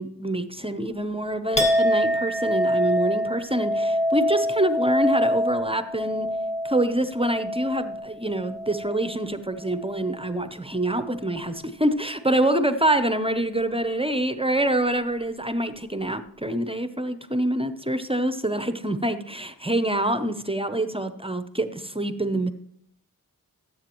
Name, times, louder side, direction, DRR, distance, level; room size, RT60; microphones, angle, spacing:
voice 1, 0.0-6.3 6.6-22.5, right 1 dB, 15° right, 10 dB, 0.7 m, -26 dB
Chink clink, 1.6-9.2 9.6-10.3, equal, 20° left, 1.2 m, -25 dB
14.5 x 7.7 x 3.0 m, 0.68 s
cardioid pair, 45°, 37 cm